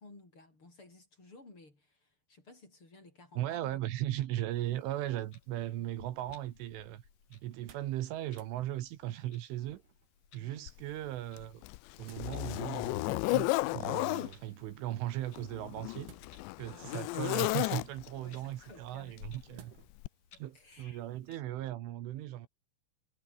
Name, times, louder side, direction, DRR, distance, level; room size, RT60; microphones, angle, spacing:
voice 1, 0.0-3.8 10.3-10.7 16.6-17.4 18.2-19.2 19.5-19.7 20.5-21.0 21.3-21.4, left 2 dB, 25° left, 6.9 m, -56 dB
voice 2, 3.4-7.0 7.3-9.8 10.3-11.6 12.0-16.1 16.6-19.7 20.4-22.5, right 14 dB, 75° right, 3.9 m, -37 dB
Clock, 4.5-21.4, left 6 dB, 45° left, 5.7 m, -64 dB
sound 1, 7.5-8.0 8.3-8.6 9.7-10.2 11.6-12.3 13.5-14.0 16.0-16.7 17.4-17.9 19.6-20.0 20.5-20.6, right 10 dB, 60° right, 4.2 m, -58 dB
Zipper (clothing), 10.7-10.8 11.4-14.3 15.3-18.2 19.2-19.4 20.0-20.1, left 22 dB, 85° left, 2.5 m, -33 dB
omnidirectional pair, 5.8 m